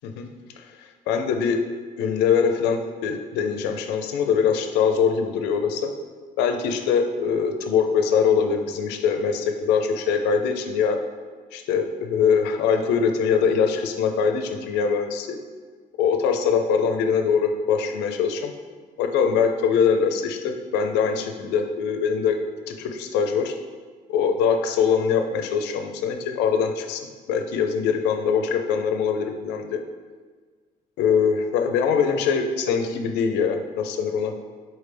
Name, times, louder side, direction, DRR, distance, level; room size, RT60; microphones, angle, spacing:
voice 1, 0.8-1.6 2.0-5.9 6.4-11.0 11.5-15.4 16.0-18.5 19.0-22.4 22.7-23.6 24.1-29.8 31.0-34.3, left 6 dB, 90° left, 6 dB, 0.5 m, -23 dB
4.4 x 3.3 x 3.3 m, 1.5 s
cardioid pair, 110°, 17 cm